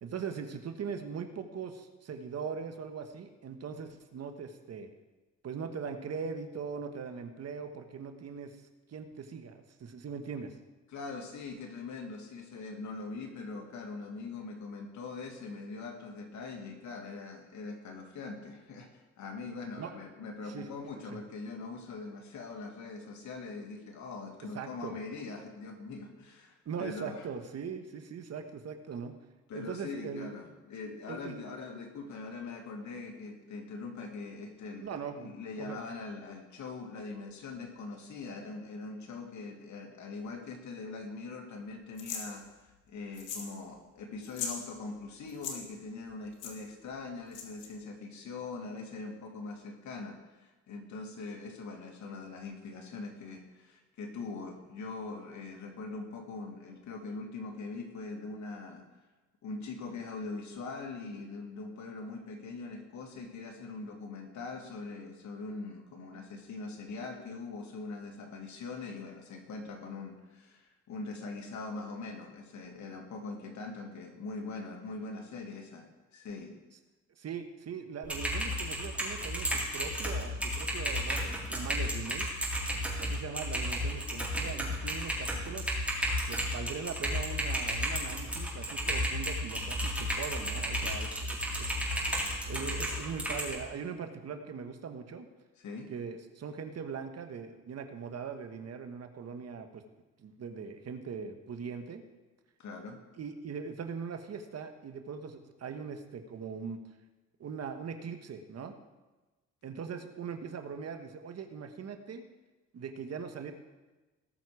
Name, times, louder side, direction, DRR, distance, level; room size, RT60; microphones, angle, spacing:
voice 1, 0.0-4.9 5.4-8.6 8.9-10.6 19.8-20.0 20.4-20.7 21.1-21.2 24.5-25.0 26.6-29.1 29.5-30.3 31.1-31.5 34.8-35.8 77.2-82.3 83.0-85.7 86.2-91.8 92.5-95.3 95.9-99.8 100.2-102.0 103.2-106.8 107.4-108.7 109.6-112.2 112.7-113.5, right 6 dB, 55° right, 6 dB, 1.4 m, -40 dB
voice 2, 10.9-27.3 29.5-34.9 35.2-58.8 59.4-76.5 95.6-95.9 102.6-103.0, left 3 dB, 70° left, 2 dB, 2.4 m, -42 dB
sound 1, 42.0-42.3 43.1-43.5 43.8-43.9 44.2-44.6 45.3-45.6 46.4-46.5 47.3-47.7, left 6 dB, 85° left, 2.3 m, -38 dB
Typing, 78.0-93.6, equal, 5° right, 4.1 m, -33 dB
18.5 x 6.5 x 4.9 m, 1.2 s
cardioid pair, 90°, 30 cm